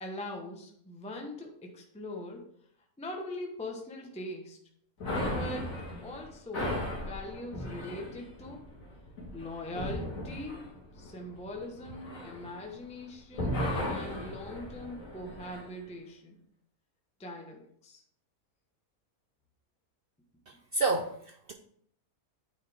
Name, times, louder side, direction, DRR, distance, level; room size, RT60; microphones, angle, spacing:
voice 1, 0.0-2.5 3.0-4.6 5.3-5.7 6.0-8.6 9.3-16.3 17.2-18.0, left 1 dB, 5° left, 1 dB, 0.7 m, -41 dB
sound 1, 5.0-13.0 13.3-15.7, left 1 dB, 70° left, 2.2 m, -36 dB
voice 2, 20.5-21.5, right 3 dB, 65° right, 4 dB, 0.5 m, -30 dB
9.2 x 4.0 x 3.5 m, 0.66 s
omnidirectional pair, 1.5 m